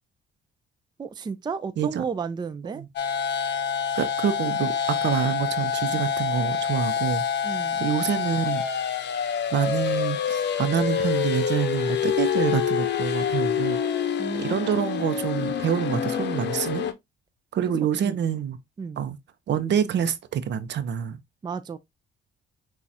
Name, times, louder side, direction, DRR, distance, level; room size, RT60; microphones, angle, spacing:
voice 1, 1.0-2.8 7.4-7.8 14.2-14.9 17.6-17.7 18.0-18.2 18.8-19.0 21.4-21.8, right 5 dB, 20° right, 0.4 m, -33 dB
sound 1, 3.0-16.9, left 7 dB, 60° left, 0.7 m, -26 dB
voice 2, 4.0-7.2 7.8-8.6 9.5-13.8 14.4-16.8 17.5-18.6 19.0-19.2 19.5-21.2, right 8 dB, 65° right, 0.6 m, -26 dB
6.2 x 2.4 x 2.7 m
cardioid pair, 90°, 20 cm